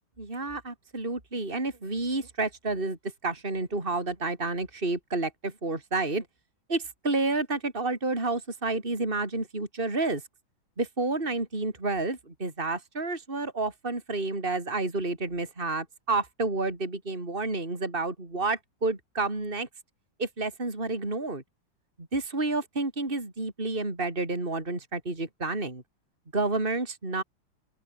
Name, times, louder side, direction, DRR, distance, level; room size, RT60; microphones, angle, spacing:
voice 1, 0.2-6.3 6.7-10.2 10.8-19.7 20.2-21.4 22.0-25.8 26.3-27.2, right 3 dB, 25° right, 4.5 m, -30 dB
open air
omnidirectional pair, 2.2 m